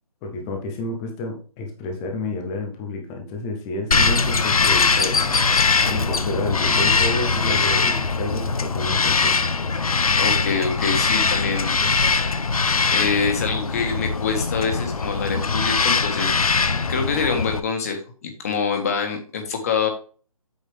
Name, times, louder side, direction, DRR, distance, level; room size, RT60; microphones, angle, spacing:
voice 1, 0.2-5.2 5.8-9.4, left 2 dB, 5° left, 3 dB, 0.5 m, -30 dB
Bird vocalization bird call bird song, 3.9-17.6, left 4 dB, 75° left, 1.0 m, -21 dB
voice 2, 10.2-11.8 12.9-19.9, left 5 dB, 25° left, 5 dB, 1.6 m, -25 dB
8.3 x 7.1 x 3.3 m, 0.40 s
hypercardioid pair, 170°, 18 cm